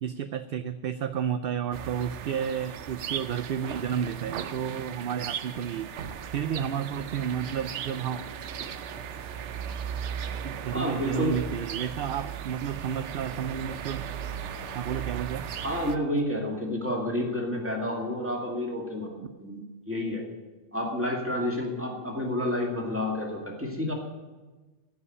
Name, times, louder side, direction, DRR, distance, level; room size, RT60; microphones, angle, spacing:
voice 1, 0.0-5.9 6.3-8.2 10.4-14.0 14.7-15.5, right 8 dB, 65° right, 11 dB, 0.7 m, -31 dB
sound 1, 1.7-16.0, right 8 dB, 90° right, 1.0 m, -37 dB
voice 2, 10.7-11.3 15.6-20.2 20.7-23.9, left 1 dB, 10° right, -1 dB, 2.4 m, -30 dB
15.0 x 5.6 x 9.5 m, 1.2 s
omnidirectional pair, 1.2 m